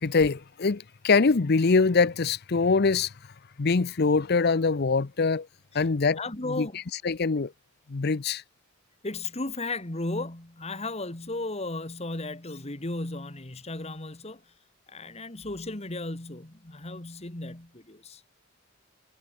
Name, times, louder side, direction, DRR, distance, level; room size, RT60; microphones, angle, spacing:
voice 1, 0.0-3.1 3.6-5.5 5.7-6.2 6.5-6.7 7.0-7.5 7.9-8.4, left 4 dB, 50° left, 0.6 m, -23 dB
voice 2, 6.2-6.8 9.0-14.4 14.9-18.2, left 2 dB, 30° left, 1.8 m, -35 dB
head